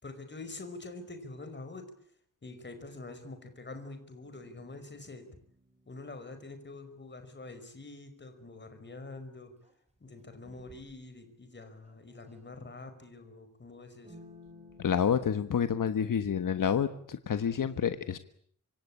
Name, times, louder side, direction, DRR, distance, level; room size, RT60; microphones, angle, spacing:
voice 1, 0.0-1.9 2.4-5.3 5.9-9.5 10.0-14.2, left 2 dB, 35° left, 9 dB, 5.3 m, -46 dB
sound 1, 4.2-6.6 9.6-9.7 10.4-11.0 11.6-12.5 14.0-17.1, left 1 dB, 20° right, 5.3 m, -57 dB
voice 2, 14.8-18.2, left 7 dB, 85° left, 10 dB, 1.5 m, -29 dB
26.0 x 25.5 x 8.8 m, 0.63 s
wide cardioid pair, 155°, 31 cm